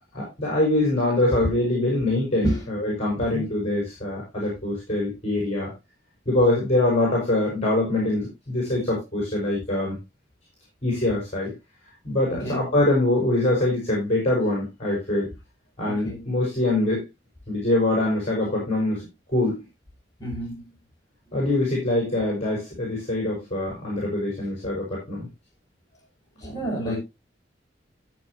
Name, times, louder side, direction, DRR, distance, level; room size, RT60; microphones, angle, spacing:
voice 1, 0.1-5.7 6.3-10.0 10.8-11.5 12.0-15.3 15.8-17.1 17.5-19.7 21.3-25.3 26.9-27.0, left 1 dB, 35° left, 5.4 m, -24 dB
voice 2, 3.2-3.5 12.3-12.7 15.8-16.3 20.2-20.7 26.4-27.0, right 1 dB, 20° left, 7.8 m, -30 dB
13.5 x 8.3 x 3.0 m
head